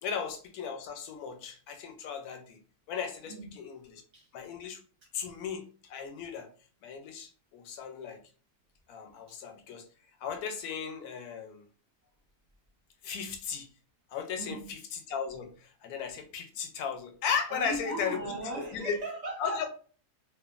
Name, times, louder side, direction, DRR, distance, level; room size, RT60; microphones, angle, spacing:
voice 1, 0.0-2.6 2.9-4.0 4.3-4.8 5.1-6.5 6.8-8.2 8.9-9.9 10.2-11.6 13.0-13.7 14.1-14.8 15.1-18.2 18.7-19.0 19.4-19.7, left 6 dB, 80° left, 1.1 m, -36 dB
voice 2, 3.3-4.3 9.3-9.4 14.4-14.8 17.5-19.7, right 1 dB, 90° right, 0.3 m, -39 dB
3.0 x 2.2 x 2.4 m
omnidirectional pair, 1.6 m